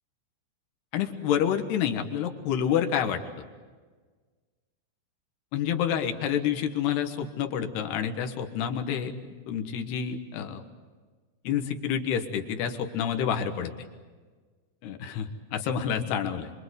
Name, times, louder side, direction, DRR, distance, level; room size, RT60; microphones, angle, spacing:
voice 1, 0.9-3.2 5.5-9.1 9.5-10.6 11.4-13.7 14.8-16.5, left 8 dB, 70° left, 5 dB, 3.3 m, -28 dB
25.5 x 25.0 x 8.1 m, 1.4 s
omnidirectional pair, 5.2 m